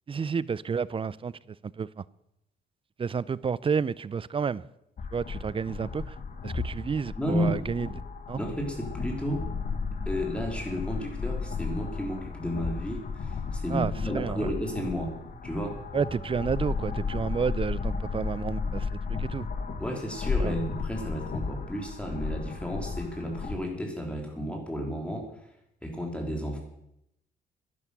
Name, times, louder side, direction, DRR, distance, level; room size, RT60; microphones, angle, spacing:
voice 1, 0.1-1.9 3.0-4.7 5.1-6.2 6.4-7.9 8.3-8.4 13.7-14.5 15.9-19.5 20.4-20.5, right 6 dB, 25° right, 0.5 m, -30 dB
sound 1, 5.0-23.5, left 4 dB, 45° left, 1.6 m, -34 dB
voice 2, 7.2-7.6 8.4-9.4 10.1-15.1 15.4-15.8 19.8-25.2 25.8-26.6, equal, 5° left, 3.3 m, -32 dB
11.0 x 11.0 x 6.9 m
cardioid pair, 90°, 20 cm